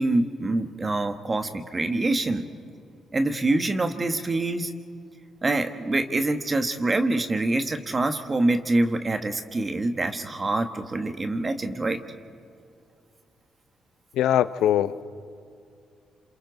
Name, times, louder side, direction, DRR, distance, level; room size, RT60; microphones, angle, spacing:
voice 1, 0.0-2.5 3.1-4.7 5.4-12.0, right 2 dB, 30° right, 7 dB, 1.4 m, -25 dB
voice 2, 14.1-15.0, left 11 dB, 85° left, 13 dB, 0.6 m, -22 dB
28.0 x 27.5 x 4.0 m, 2.4 s
cardioid pair, 80°, 0 cm